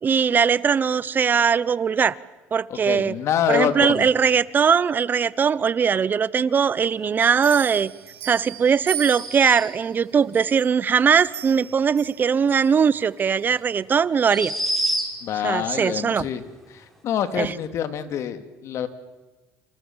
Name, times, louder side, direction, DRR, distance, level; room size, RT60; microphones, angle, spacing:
voice 1, 0.0-2.2 2.5-3.1 3.5-7.9 8.2-14.5 15.4-16.3 17.4-17.5, right 6 dB, 35° right, 19 dB, 0.9 m, -20 dB
voice 2, 2.7-4.1 15.2-16.4 16.7-18.9, left 9 dB, 60° left, 9 dB, 2.5 m, -26 dB
sound 1, 7.2-9.8 10.3-12.7 13.2-13.3, right 11 dB, 65° right, 4.7 m, -37 dB
sound 2, 8.8-9.9 13.0-13.1 14.2-15.4, right 1 dB, 5° left, 6.1 m, -28 dB
28.5 x 26.5 x 7.4 m, 1.2 s
supercardioid pair, 100°, 6 cm